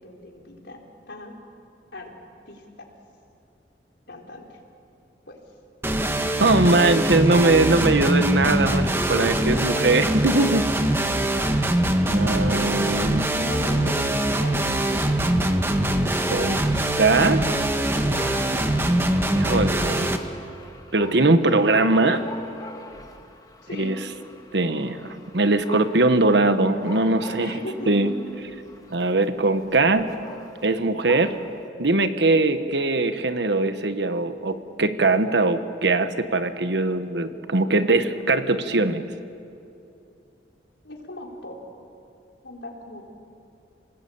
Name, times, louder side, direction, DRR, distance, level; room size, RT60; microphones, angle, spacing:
voice 1, 0.0-1.3 1.9-2.1 2.5-2.9 4.1-4.6 5.3-5.4 13.3-14.6 18.3-18.7 23.6-24.0 27.4-28.2 32.2-32.3 37.6-39.0 40.8-41.6 42.4-43.0, left 1 dB, 75° left, 0 dB, 4.3 m, -38 dB
sound 1, 5.8-20.2, right 1 dB, 15° right, 1.3 m, -23 dB
voice 2, 6.4-10.7 12.1-13.3 16.3-16.6 17.0-17.5 19.3-20.1 20.9-22.3 23.7-24.0 24.5-27.6 27.9-28.1 28.9-30.1 30.6-31.4 31.8-39.0, right 2 dB, 70° right, 9 dB, 1.3 m, -21 dB
Dog, 17.9-31.7, left 1 dB, 20° left, 1.7 m, -43 dB
28.5 x 20.0 x 8.7 m, 2.6 s
head